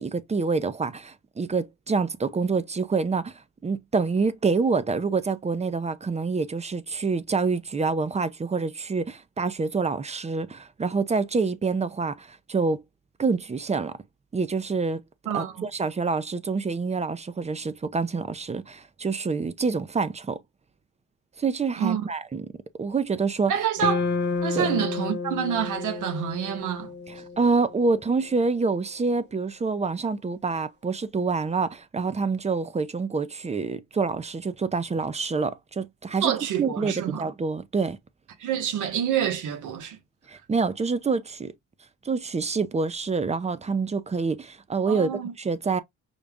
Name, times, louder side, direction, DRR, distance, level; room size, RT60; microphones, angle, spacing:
voice 1, 0.0-12.8 13.2-13.9 14.3-15.0 15.3-20.4 21.4-22.5 22.8-23.5 24.5-24.7 27.1-36.3 36.6-38.0 40.3-41.5 42.0-45.8, right 4 dB, 20° right, 0.6 m, -27 dB
voice 2, 15.3-15.7 21.8-22.1 23.5-24.0 24.4-26.9 36.2-37.2 38.4-40.0 44.9-45.3, right 9 dB, 85° right, 1.2 m, -27 dB
sound 1, 23.8-28.1, left 4 dB, 35° left, 0.8 m, -30 dB
5.4 x 2.3 x 3.5 m
cardioid pair, 90°, 30 cm